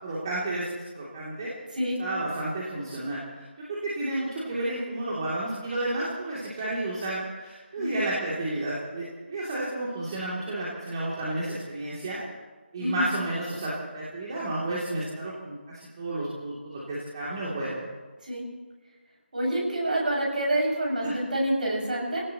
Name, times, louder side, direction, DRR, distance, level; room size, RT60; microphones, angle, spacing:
voice 1, 0.0-1.5 2.0-3.2 3.8-12.2 12.7-17.8 21.0-21.1, right 1 dB, 25° right, -7 dB, 2.8 m, -31 dB
voice 2, 12.8-13.1 18.2-18.4 19.3-22.2, right 1 dB, 45° right, -3 dB, 6.4 m, -27 dB
27.0 x 18.0 x 3.0 m, 1.3 s
figure-of-eight pair, 155°, 6 cm